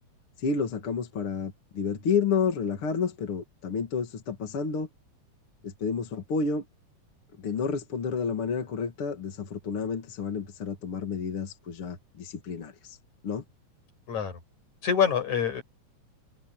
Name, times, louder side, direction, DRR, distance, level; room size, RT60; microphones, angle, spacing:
voice 1, 0.4-4.9 5.6-6.6 7.4-13.0 13.2-13.4, left 5 dB, 45° left, 2.8 m, -30 dB
voice 2, 14.1-14.4 14.8-15.6, left 7 dB, 60° left, 7.4 m, -25 dB
omnidirectional pair, 3.7 m